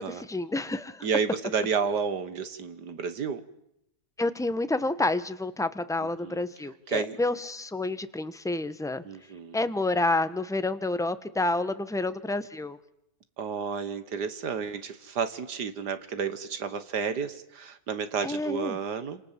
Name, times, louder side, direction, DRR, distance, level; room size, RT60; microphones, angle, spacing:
voice 1, 0.3-1.1 4.2-9.0 9.5-12.8 18.2-18.8, left 2 dB, ahead, 11 dB, 0.9 m, -29 dB
voice 2, 1.0-3.4 6.2-6.4 6.9-7.2 9.0-9.6 13.4-19.2, right 6 dB, 70° right, 11 dB, 1.9 m, -31 dB
28.0 x 27.5 x 7.5 m, 0.80 s
omnidirectional pair, 1.8 m